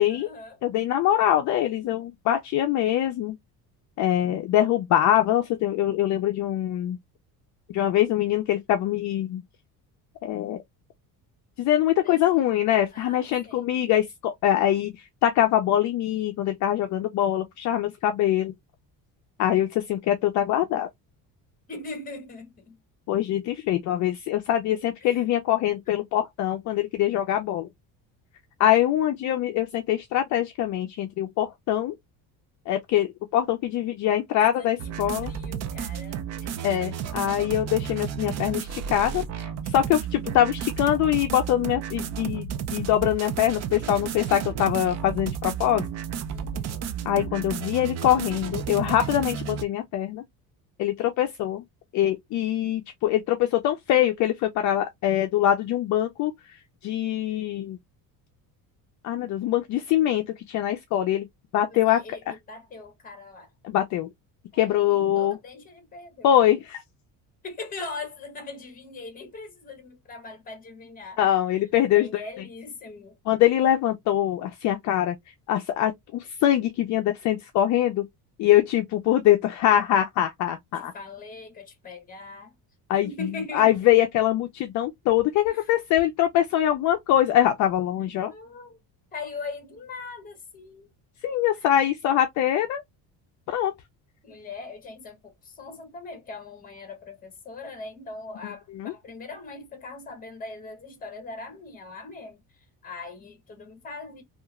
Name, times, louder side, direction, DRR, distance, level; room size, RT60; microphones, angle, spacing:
voice 1, 0.1-0.6 12.0-12.5 12.9-13.6 21.7-22.8 25.0-25.2 34.5-35.0 35.2-36.6 46.3-46.8 61.7-63.5 64.5-66.3 67.4-71.2 71.9-73.2 80.7-82.5 83.0-83.9 85.5-85.7 88.3-88.8 89.1-90.9 94.2-104.2, left 3 dB, 20° left, 0.9 m, -41 dB
voice 2, 0.6-3.4 4.0-7.0 7.7-9.4 10.2-10.6 11.6-18.5 19.4-20.9 23.1-27.7 28.6-31.9 32.7-35.3 36.6-45.8 47.1-50.2 50.8-51.6 51.9-56.3 56.8-57.8 59.0-61.3 61.5-62.0 63.6-64.1 64.6-65.4 66.2-66.8 71.2-72.1 73.3-75.2 75.5-78.0 78.4-80.9 82.9-83.1 83.5-88.3 91.2-92.8 93.5-93.7 98.8-98.9, left 12 dB, 50° left, 0.4 m, -23 dB
sound 1, 34.8-49.6, right 8 dB, 45° right, 0.4 m, -32 dB
2.8 x 2.4 x 2.3 m
cardioid pair, 150°, 39 cm